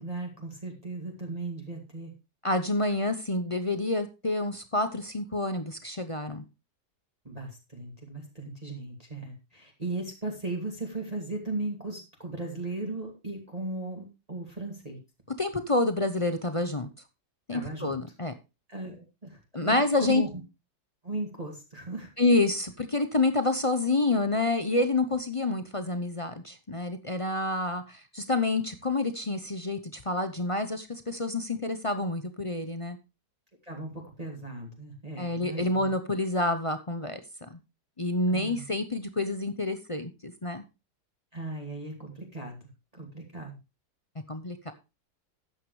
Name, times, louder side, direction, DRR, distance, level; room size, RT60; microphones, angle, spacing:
voice 1, 0.0-2.1 7.2-15.0 17.5-18.0 18.7-20.4 21.0-22.1 33.6-35.9 38.3-38.6 41.3-42.6 42.9-43.6, right 2 dB, 20° right, 1 dB, 2.5 m, -37 dB
voice 2, 2.4-6.4 15.4-16.9 17.5-18.3 19.5-20.2 22.2-33.0 35.2-37.2 38.0-40.6 44.3-44.7, left 2 dB, 30° left, 8 dB, 0.6 m, -28 dB
13.0 x 9.5 x 3.2 m, 0.27 s
omnidirectional pair, 1.9 m